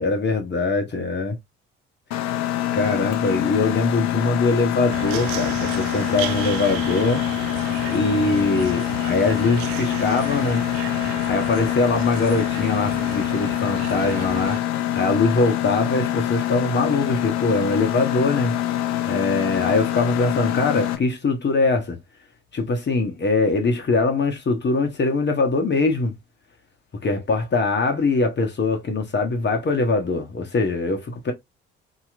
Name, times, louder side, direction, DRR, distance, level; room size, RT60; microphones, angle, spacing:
voice 1, 0.0-1.4 2.7-7.2 7.9-10.6 11.3-14.6 14.9-18.5 19.1-22.0 22.5-26.1 27.0-31.3, left 3 dB, 35° left, 1.1 m, -22 dB
Mechanisms, 2.1-21.0, left 12 dB, 60° left, 0.7 m, -25 dB
sound 1, 4.9-14.6, right 13 dB, 65° right, 0.5 m, -34 dB
2.9 x 2.9 x 2.4 m
hypercardioid pair, 50°, 31 cm